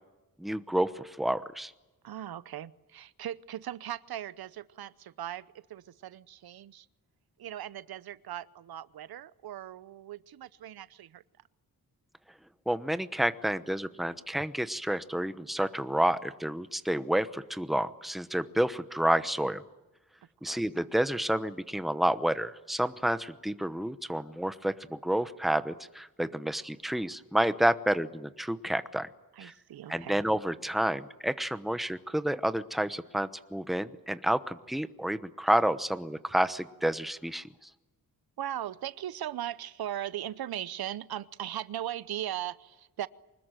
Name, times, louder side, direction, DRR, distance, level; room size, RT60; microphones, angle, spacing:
voice 1, 0.4-1.7 12.7-19.6 20.4-29.1 29.4-29.5 29.9-37.5, right 1 dB, ahead, 12 dB, 1.0 m, -29 dB
voice 2, 2.0-6.9 7.4-11.2 20.5-20.6 29.4-30.2 38.4-43.1, right 12 dB, 90° right, 17 dB, 0.8 m, -38 dB
25.0 x 20.5 x 9.1 m, 1.1 s
wide cardioid pair, 100°, 36 cm